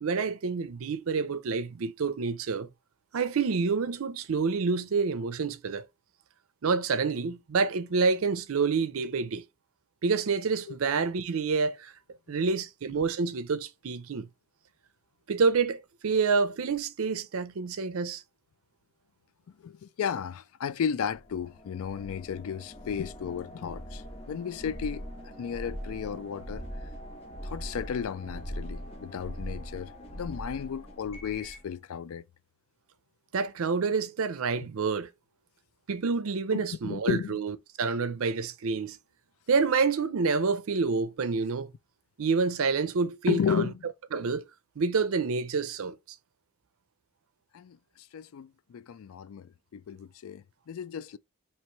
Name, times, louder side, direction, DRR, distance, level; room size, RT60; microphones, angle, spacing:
voice 1, 0.0-2.7 3.1-5.9 6.6-9.4 10.0-11.9 12.3-14.3 15.3-18.2 33.3-35.1 35.9-39.0 39.5-41.7 42.2-43.7 44.1-44.4 44.8-46.0, right 4 dB, 70° right, 0.5 m, -28 dB
voice 2, 19.6-26.6 27.4-32.2 33.9-34.0 36.5-37.3 43.3-43.9 47.5-51.2, left 7 dB, 70° left, 0.3 m, -34 dB
sound 1, 21.1-31.7, equal, 25° left, 0.9 m, -41 dB
3.0 x 3.0 x 4.4 m
head